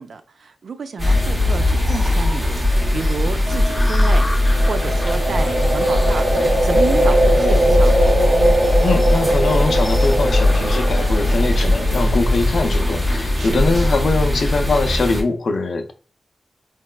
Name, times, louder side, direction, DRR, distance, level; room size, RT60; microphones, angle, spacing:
voice 1, 0.0-8.1 13.4-13.7, right 4 dB, 65° right, 0.3 m, -30 dB
sound 1, 1.0-14.0, left 2 dB, 15° left, 0.6 m, -36 dB
sound 2, 1.0-15.2, left 1 dB, 20° right, 0.8 m, -19 dB
sound 3, 4.4-12.5, right 1 dB, 85° right, 1.1 m, -21 dB
voice 2, 8.8-15.9, left 3 dB, 60° left, 0.4 m, -22 dB
4.0 x 2.2 x 2.2 m
wide cardioid pair, 150°, 0 cm